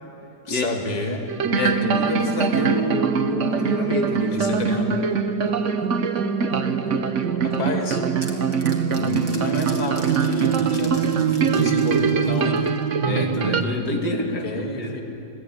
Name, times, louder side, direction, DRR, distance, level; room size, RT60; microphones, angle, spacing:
voice 1, 0.4-1.2 4.3-4.9 7.6-8.0 8.9-12.6 14.4-14.8, left 2 dB, 25° left, 2 dB, 2.2 m, -28 dB
sound 1, 1.3-13.6, right 5 dB, 50° right, 1.3 m, -25 dB
sound 2, 1.4-13.7, right 7 dB, 85° right, 1.7 m, -26 dB
voice 2, 1.5-4.6 13.0-15.2, left 2 dB, 75° left, 2 dB, 2.8 m, -27 dB
sound 3, 7.5-13.0, right 1 dB, 15° right, 2.5 m, -41 dB
26.5 x 18.0 x 9.5 m, 2.8 s
omnidirectional pair, 1.8 m